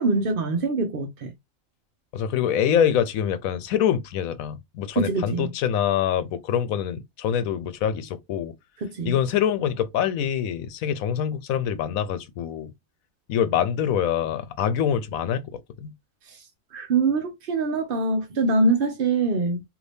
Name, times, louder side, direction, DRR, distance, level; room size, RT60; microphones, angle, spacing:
voice 1, 0.0-1.3 4.9-5.5 8.8-9.2 16.3-16.4 16.7-19.6, right 3 dB, 50° right, 0.8 m, -24 dB
voice 2, 2.1-8.5 9.0-12.7 13.3-15.5 15.8-15.9, left 9 dB, 85° left, 1.0 m, -25 dB
2.7 x 2.7 x 3.3 m
omnidirectional pair, 1.4 m